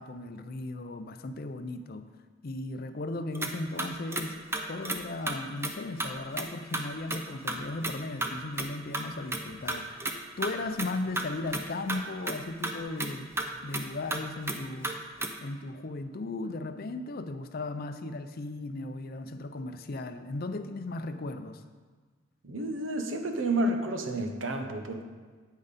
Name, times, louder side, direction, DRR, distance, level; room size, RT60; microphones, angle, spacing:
voice 1, 0.0-2.1 2.4-4.4 4.7-13.3 13.6-15.0 15.4-21.6, left 2 dB, 50° left, 9 dB, 0.5 m, -36 dB
sound 1, 3.3-3.5 3.8-4.3 4.5-5.0 5.3-5.4 5.6-5.7 6.0-6.1 6.4-6.8 7.1-7.2 7.5-7.6 7.8-7.9 8.2-8.3 8.6-8.7 8.9-9.0 9.3-10.1 10.4-10.5 10.8-10.9 11.2-12.0 12.3-12.4 12.6-12.7 13.0-13.1 13.4-13.8 14.1-14.2 14.5-15.3, right 2 dB, 10° right, 0.6 m, -32 dB
voice 2, 22.4-25.1, right 1 dB, 75° right, 4 dB, 1.0 m, -30 dB
9.1 x 8.6 x 4.2 m, 1.5 s
head